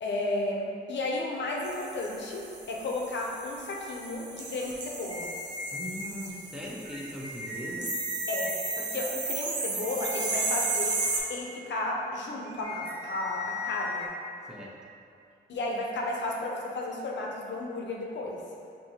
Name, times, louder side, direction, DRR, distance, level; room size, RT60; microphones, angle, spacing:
voice 1, 0.0-5.3 8.3-11.0 11.3-14.1 15.5-18.4, left 2 dB, 70° left, -2 dB, 0.6 m, -33 dB
sound 1, 1.6-11.2, right 3 dB, 70° right, 0.6 m, -34 dB
sound 2, 5.1-6.1 6.8-8.5 9.8-11.1 12.4-14.1, left 3 dB, 25° right, 1.1 m, -38 dB
voice 2, 5.7-8.0 14.5-14.8, equal, 5° right, -5 dB, 0.6 m, -39 dB
4.8 x 2.7 x 2.8 m, 2.5 s
wide cardioid pair, 110°, 19 cm